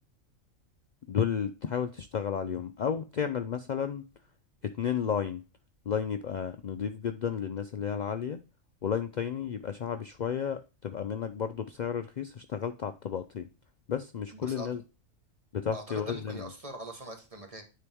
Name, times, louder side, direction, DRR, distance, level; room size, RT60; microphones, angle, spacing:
voice 1, 1.1-4.0 4.8-5.4 5.9-8.4 8.8-13.5 13.9-14.8 15.5-16.5, left 7 dB, 75° left, 8 dB, 0.4 m, -32 dB
voice 2, 14.3-14.8 15.7-17.6, right 1 dB, 25° right, 4 dB, 1.4 m, -42 dB
9.7 x 3.9 x 3.5 m, 0.31 s
omnidirectional pair, 1.4 m